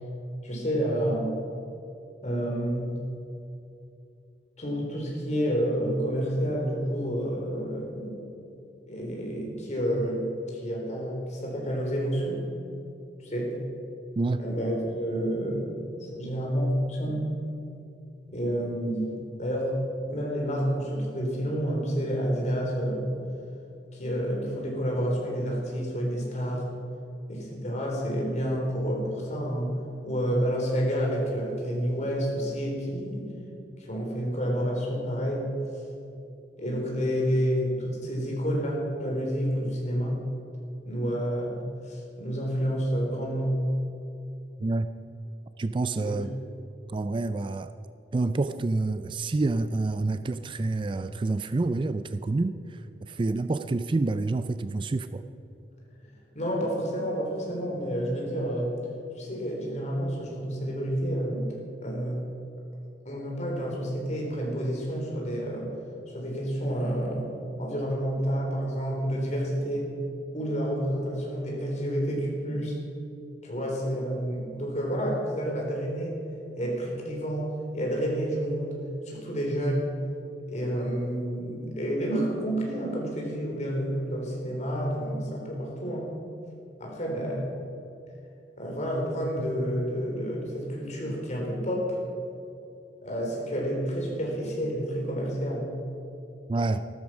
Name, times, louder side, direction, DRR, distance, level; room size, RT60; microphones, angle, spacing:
voice 1, 0.4-1.3 2.2-3.0 4.6-8.2 8.9-10.2 10.5-12.4 13.2-13.6 14.4-17.3 18.3-19.1 19.4-19.7 20.1-23.1 23.9-26.7 27.3-29.7 30.0-33.3 33.8-35.5 36.6-40.2 40.9-41.6 41.9-43.6 46.0-46.2 56.3-58.8 59.2-61.4 61.8-62.2 63.1-65.7 66.1-67.3 67.6-69.9 70.3-72.8 73.4-76.2 76.6-78.8 79.1-79.9 80.5-86.1 86.8-87.5 88.6-92.0 93.0-95.7, equal, 40° left, -1 dB, 3.7 m, -29 dB
voice 2, 45.6-46.3 46.9-47.7 48.1-55.2 96.5-96.8, right 2 dB, 30° right, 11 dB, 0.3 m, -28 dB
14.0 x 13.0 x 6.1 m, 2.7 s
head